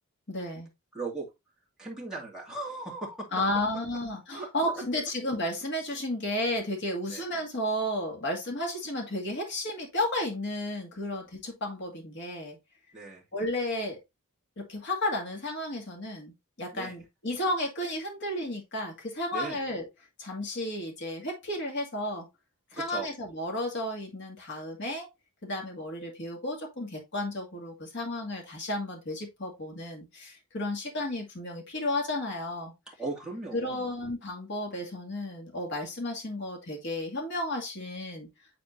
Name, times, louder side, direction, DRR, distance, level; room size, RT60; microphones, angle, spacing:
voice 1, 0.3-0.7 3.3-12.6 13.3-14.0 14.6-19.9 20.2-22.3 22.7-25.1 25.4-32.7 33.5-38.3, left 1 dB, 55° left, 2.3 m, -33 dB
voice 2, 0.9-1.3 1.8-3.3 4.3-4.5 7.1-7.2 12.9-13.2 16.7-17.0 19.3-19.6 22.7-23.1 32.9-33.9, right 3 dB, 5° right, 2.3 m, -37 dB
9.6 x 4.3 x 2.6 m
head